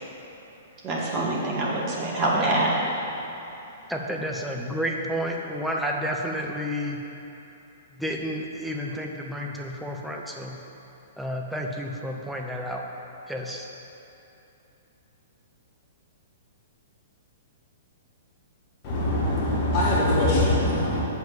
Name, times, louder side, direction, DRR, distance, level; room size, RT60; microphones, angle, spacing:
voice 1, 0.8-3.0, right 2 dB, 30° right, -5 dB, 2.0 m, -25 dB
voice 2, 3.9-7.0 8.0-10.6 11.2-12.8 13.3-13.7, equal, ahead, -1 dB, 0.8 m, -31 dB
voice 3, 18.8-21.1, left 1 dB, 35° left, -5 dB, 1.7 m, -22 dB
7.2 x 5.8 x 7.4 m, 2.9 s
figure-of-eight pair, 110°, 0 cm